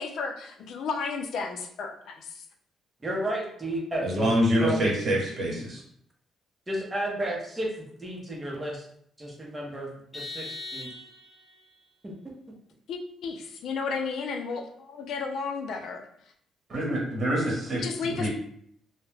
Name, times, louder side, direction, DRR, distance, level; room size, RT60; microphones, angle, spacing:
voice 1, 0.0-2.4 12.9-16.1 17.8-18.3, left 5 dB, 70° left, 4 dB, 0.4 m, -33 dB
voice 2, 3.0-4.3 4.6-4.8 6.7-8.9 9.2-9.9 10.1-10.5 10.7-10.9 12.0-12.1, right 1 dB, 20° right, -1 dB, 0.7 m, -32 dB
voice 3, 4.0-5.8 16.7-18.3, equal, 45° right, -2 dB, 1.0 m, -26 dB
Vehicle horn car horn honking, 10.1-11.5, left 2 dB, 20° left, 0.6 m, -39 dB
2.2 x 2.1 x 3.1 m, 0.66 s
cardioid pair, 90°, 0 cm